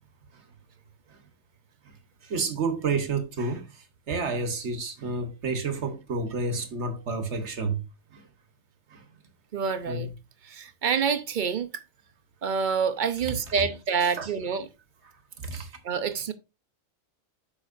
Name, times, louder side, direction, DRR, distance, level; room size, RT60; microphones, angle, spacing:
voice 1, 2.2-7.9 8.1-8.2 8.9-9.0 9.9-10.1 14.0-14.3 15.4-15.7, right 3 dB, 60° right, 1.5 m, -30 dB
voice 2, 9.5-10.1 10.5-11.7 12.4-14.7 15.8-16.3, right 6 dB, 45° right, 0.8 m, -27 dB
8.8 x 6.3 x 2.6 m
omnidirectional pair, 1.4 m